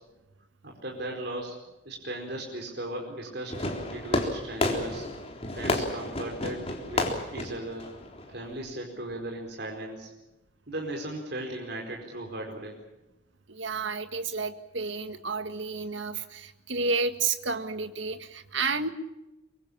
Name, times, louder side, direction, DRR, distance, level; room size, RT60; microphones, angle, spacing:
voice 1, 0.6-1.5 1.8-5.1 5.5-7.0 7.3-7.8 8.3-10.1 10.7-12.8, right 1 dB, 55° right, 0 dB, 4.6 m, -37 dB
Fireworks, 3.5-8.5, left 2 dB, 30° left, 3.7 m, -31 dB
voice 2, 13.5-18.9, right 4 dB, 75° right, 9 dB, 1.8 m, -31 dB
24.5 x 24.0 x 7.2 m, 1.0 s
head